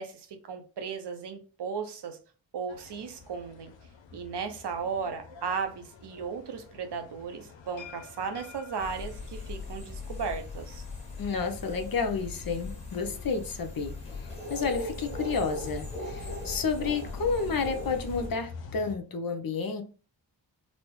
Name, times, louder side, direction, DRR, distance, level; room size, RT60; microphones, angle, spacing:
voice 1, 0.0-2.2 2.5-3.7 4.1-10.8, right 5 dB, 65° right, 0.7 m, -36 dB
sound 1, 2.7-19.0, left 5 dB, 90° left, 0.6 m, -49 dB
sound 2, 8.8-18.3, left 2 dB, 15° left, 1.3 m, -39 dB
voice 2, 11.2-13.9 14.5-19.8, left 5 dB, 55° left, 0.7 m, -30 dB
4.0 x 2.0 x 3.1 m
cardioid pair, 55°, 43 cm